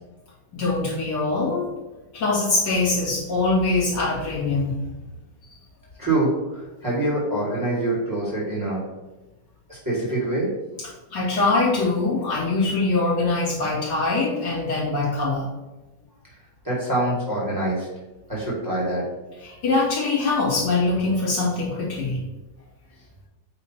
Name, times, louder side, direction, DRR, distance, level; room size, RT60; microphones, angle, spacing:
voice 1, 0.5-1.7 2.1-4.8 11.1-15.5 19.4-22.2, left 3 dB, 75° left, -8 dB, 2.8 m, -23 dB
voice 2, 6.0-8.8 9.7-10.5 16.6-17.9 18.3-19.0, right 2 dB, 10° right, -6 dB, 2.0 m, -25 dB
8.2 x 3.0 x 4.4 m, 1.1 s
omnidirectional pair, 1.9 m